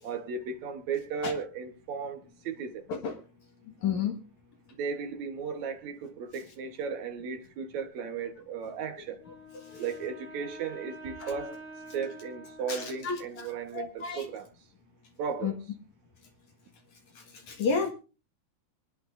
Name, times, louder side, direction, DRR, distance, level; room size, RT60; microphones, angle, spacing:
voice 1, 0.0-2.8 4.8-9.2 9.8-11.6 11.9-14.5 15.2-15.6, right 6 dB, 60° right, 2.0 m, -35 dB
voice 2, 3.8-4.1 9.7-9.8 11.2-11.3 12.7-14.3 15.4-15.5 17.2-17.9, left 5 dB, 55° left, 2.5 m, -32 dB
Wind instrument woodwind instrument, 9.2-13.4, right 1 dB, 10° right, 1.9 m, -47 dB
24.0 x 11.0 x 2.6 m
omnidirectional pair, 4.8 m